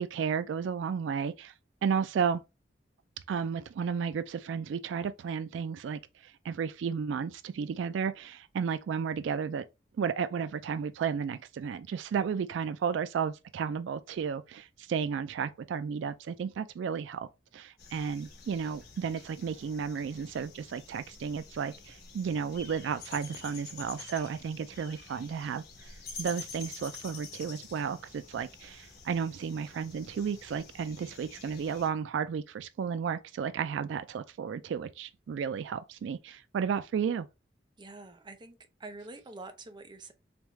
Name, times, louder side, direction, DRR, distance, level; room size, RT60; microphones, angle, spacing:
voice 1, 0.0-1.5 1.8-2.4 3.3-9.6 10.0-17.3 17.5-37.3, right 6 dB, 80° right, 0.3 m, -33 dB
sound 1, 17.8-31.9, left 4 dB, 60° left, 1.2 m, -48 dB
voice 2, 37.8-40.1, right 2 dB, 25° right, 0.6 m, -46 dB
3.5 x 3.4 x 3.1 m
head